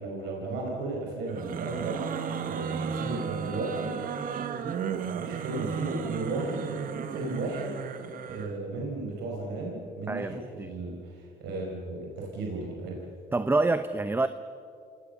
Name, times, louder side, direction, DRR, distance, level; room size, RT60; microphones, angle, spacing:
voice 1, 0.0-2.1 2.5-4.0 5.0-6.6 7.1-7.8 8.3-13.0, right 2 dB, 80° right, -1 dB, 5.3 m, -35 dB
sound 1, 1.3-8.6, right 7 dB, 55° right, 1.5 m, -34 dB
voice 2, 10.1-10.7 13.3-14.3, right 3 dB, 15° right, 11 dB, 0.7 m, -27 dB
28.0 x 19.0 x 6.9 m, 2.5 s
cardioid pair, 110°, 17 cm